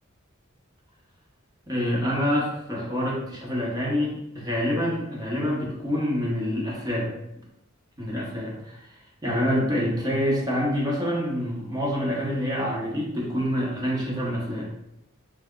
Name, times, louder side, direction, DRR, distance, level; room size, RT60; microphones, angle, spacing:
voice 1, 1.7-7.1 8.0-8.9 9.2-14.7, equal, 20° right, -4 dB, 0.8 m, -26 dB
5.5 x 2.1 x 2.3 m, 0.88 s
head